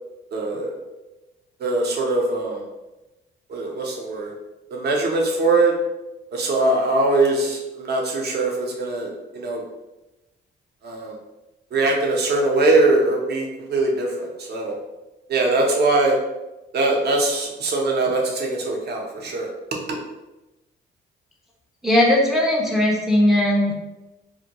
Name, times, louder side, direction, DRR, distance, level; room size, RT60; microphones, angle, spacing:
voice 1, 0.3-0.8 1.6-2.6 3.5-4.3 4.7-5.7 6.3-9.6 10.8-11.1 11.7-14.7 15.3-16.2 16.7-19.5 19.9-20.0, right 2 dB, 55° right, 0 dB, 0.6 m, -21 dB
voice 2, 21.8-23.8, left 1 dB, ahead, -1 dB, 0.4 m, -18 dB
2.2 x 2.2 x 2.8 m, 1.0 s
cardioid pair, 90°, 20 cm